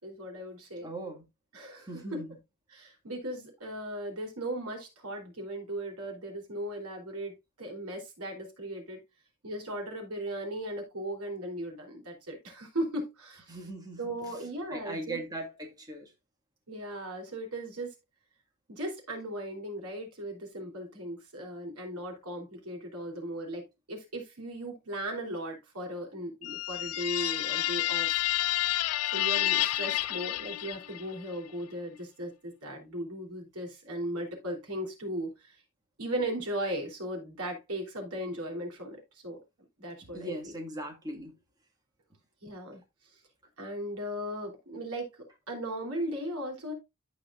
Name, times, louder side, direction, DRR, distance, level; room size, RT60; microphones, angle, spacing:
voice 1, 0.0-0.9 1.5-2.2 2.7-9.0 9.4-13.6 14.0-15.2 16.7-17.9 18.7-23.6 23.9-28.2 29.0-35.6 36.0-39.4 39.8-40.5 42.4-42.8 43.6-46.7, right 1 dB, 90° right, 3.3 m, -37 dB
voice 2, 0.8-1.2 1.9-2.3 13.5-14.0 14.7-16.1 40.1-41.3, right 1 dB, 15° right, 1.9 m, -39 dB
sound 1, 26.4-31.1, left 15 dB, 85° left, 0.4 m, -29 dB
14.5 x 5.0 x 2.4 m
head